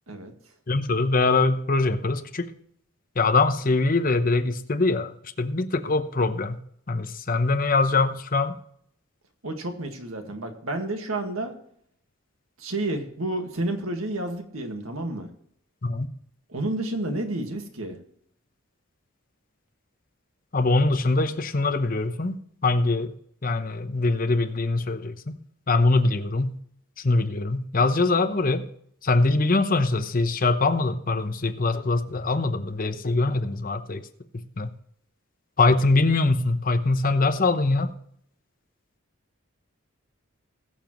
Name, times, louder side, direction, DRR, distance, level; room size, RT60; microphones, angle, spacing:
voice 1, 0.7-2.5 3.2-6.6 6.9-8.6 15.8-16.1 20.5-23.1 23.4-25.4 25.7-26.6 27.0-28.7 29.0-34.0 34.6-34.7 35.6-37.9, left 3 dB, 40° left, 9 dB, 0.9 m, -23 dB
voice 2, 9.4-11.5 12.6-15.3 16.5-18.0, right 2 dB, 85° right, 5 dB, 1.8 m, -30 dB
21.0 x 7.2 x 3.1 m, 0.68 s
head